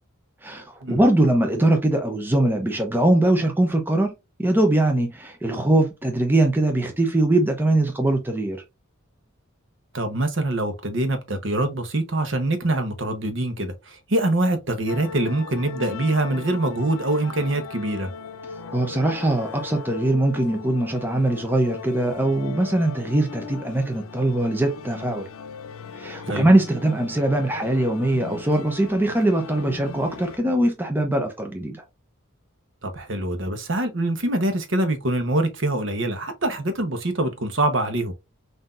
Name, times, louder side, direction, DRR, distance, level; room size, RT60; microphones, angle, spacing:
voice 1, 0.4-4.1 4.4-8.6 18.7-25.2 26.0-31.8, right 1 dB, 10° right, 0.5 m, -21 dB
voice 2, 9.9-18.1 26.3-26.5 32.8-38.1, right 1 dB, 60° right, 0.9 m, -24 dB
sound 1, 14.9-30.4, left 5 dB, 80° left, 0.6 m, -38 dB
5.6 x 2.7 x 2.4 m
head